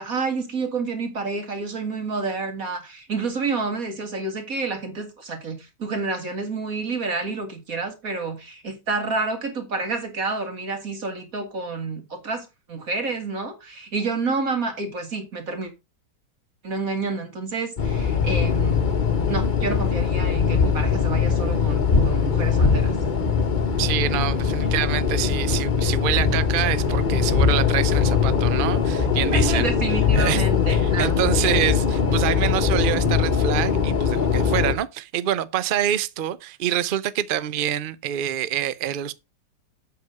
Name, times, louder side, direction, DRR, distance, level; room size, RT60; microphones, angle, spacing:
voice 1, 0.0-15.7 16.6-18.9 19.3-22.9 29.3-31.1, right 4 dB, 50° right, 2.8 m, -29 dB
sound 1, 17.8-34.8, left 6 dB, 35° left, 1.0 m, -21 dB
voice 2, 23.8-29.7 30.1-39.1, right 11 dB, 85° right, 0.4 m, -26 dB
8.2 x 7.0 x 5.2 m
omnidirectional pair, 1.9 m